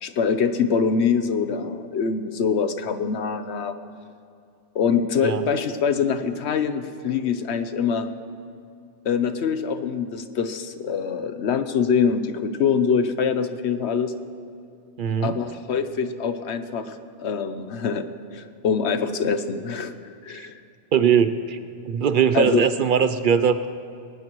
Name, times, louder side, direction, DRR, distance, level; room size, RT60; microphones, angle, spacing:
voice 1, 0.0-3.8 4.7-8.1 9.0-14.1 15.2-18.1 18.3-19.9 20.2-20.6 22.3-22.6, left 6 dB, 70° left, 10 dB, 1.0 m, -24 dB
voice 2, 15.0-15.4 20.3-20.5 20.9-21.6 21.8-23.7, right 7 dB, 55° right, 11 dB, 0.6 m, -20 dB
20.5 x 18.5 x 3.1 m, 2.4 s
omnidirectional pair, 1.2 m